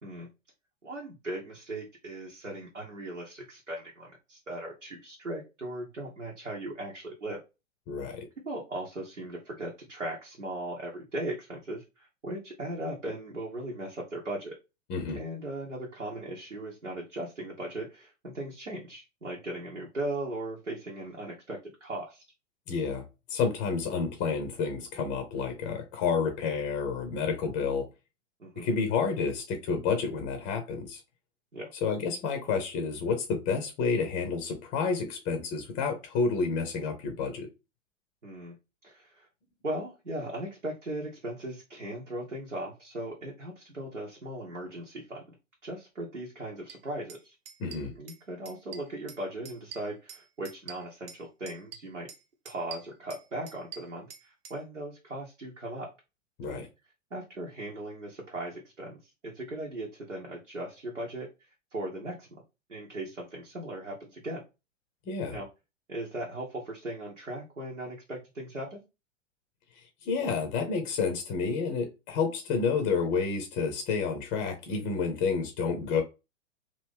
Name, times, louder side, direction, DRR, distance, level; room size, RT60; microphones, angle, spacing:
voice 1, 0.8-7.4 8.4-14.6 15.1-22.2 28.4-28.7 31.5-31.7 38.2-38.6 38.8-39.3 39.6-45.3 45.6-47.4 48.0-52.1 52.4-55.9 56.5-56.7 57.1-62.3 62.7-64.4 65.3-65.5 65.9-68.8, right 1 dB, 85° right, 1.0 m, -38 dB
voice 2, 7.9-8.3 14.9-15.2 22.7-27.9 28.6-31.0 31.8-37.5 47.6-47.9 56.4-56.7 65.1-65.4 70.0-76.0, left 5 dB, 20° left, 0.6 m, -30 dB
sound 1, 46.7-46.8 47.1-47.2 47.4-48.2 48.4-49.2 49.4-51.2 51.5-52.2 52.4-54.6, right 8 dB, 50° right, 0.7 m, -45 dB
3.0 x 2.6 x 3.4 m
figure-of-eight pair, 105°, 37 cm